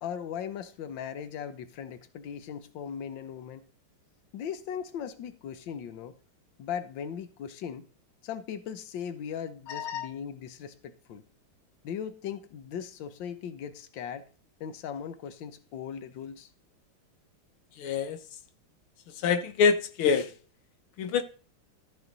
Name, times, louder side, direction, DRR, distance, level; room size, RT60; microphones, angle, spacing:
voice 1, 0.0-3.6 4.3-6.1 6.6-7.9 8.2-11.2 11.8-14.2 14.6-16.5, left 8 dB, 65° left, 1.6 m, -38 dB
voice 2, 9.7-10.1 17.8-18.2 19.2-20.3 21.0-21.2, left 6 dB, 80° left, 1.7 m, -26 dB
14.0 x 5.0 x 4.0 m
omnidirectional pair, 2.3 m